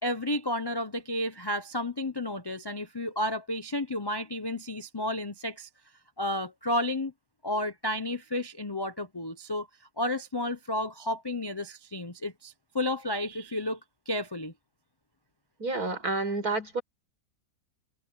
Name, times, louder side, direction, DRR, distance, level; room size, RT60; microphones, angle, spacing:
voice 1, 0.0-5.7 6.2-7.1 7.4-9.7 10.0-13.8 14.1-14.5, left 1 dB, 30° left, 0.5 m, -32 dB
voice 2, 15.6-16.8, right 3 dB, 60° right, 5.5 m, -29 dB
omnidirectional pair, 1.8 m